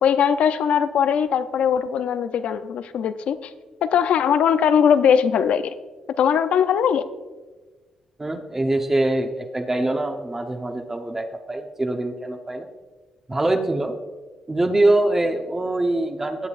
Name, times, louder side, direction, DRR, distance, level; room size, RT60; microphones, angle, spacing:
voice 1, 0.0-3.5 3.8-5.7 6.2-7.1, left 8 dB, 75° left, 12 dB, 0.6 m, -20 dB
voice 2, 8.2-12.7 13.3-13.9 14.5-16.5, right 2 dB, 20° right, 4 dB, 0.9 m, -23 dB
19.0 x 8.2 x 2.5 m, 1.3 s
cardioid pair, 95°, 2 cm